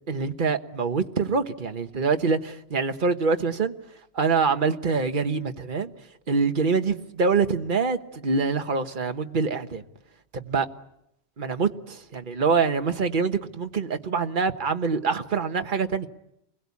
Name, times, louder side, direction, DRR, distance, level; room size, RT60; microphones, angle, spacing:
voice 1, 0.1-3.7 4.1-5.9 6.3-9.8 10.3-10.7 11.4-16.1, right 5 dB, 50° right, 1.4 m, -25 dB
29.5 x 21.5 x 8.5 m
omnidirectional pair, 1.1 m